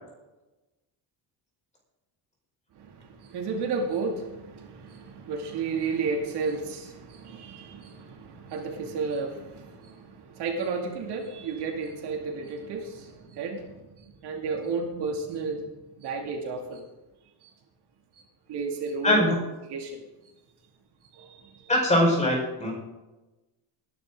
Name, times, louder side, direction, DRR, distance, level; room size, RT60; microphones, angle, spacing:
voice 1, 2.7-16.8 17.4-17.5 18.5-19.3 19.7-20.0 21.1-21.7, right 4 dB, 65° right, 2.6 m, -33 dB
voice 2, 19.0-19.3 21.7-22.7, left 1 dB, 15° left, 5.1 m, -22 dB
19.0 x 11.5 x 3.9 m
cardioid pair, 180°, 43 cm